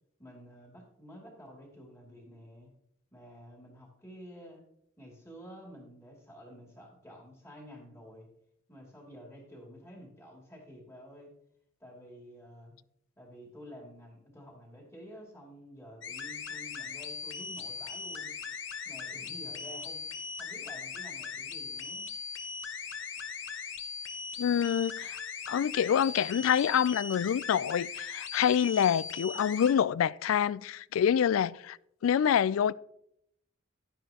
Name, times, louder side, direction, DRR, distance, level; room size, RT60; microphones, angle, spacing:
voice 1, 0.2-2.7 3.1-4.6 5.0-8.3 8.7-11.3 11.8-12.7 13.2-18.3 18.8-20.0 20.4-22.1, equal, 15° left, 2.6 m, -50 dB
sound 1, 16.0-29.7, left 5 dB, 70° left, 1.0 m, -39 dB
voice 2, 24.4-25.2 25.5-31.8 32.0-32.7, left 8 dB, 90° left, 0.3 m, -26 dB
11.0 x 10.0 x 2.9 m
head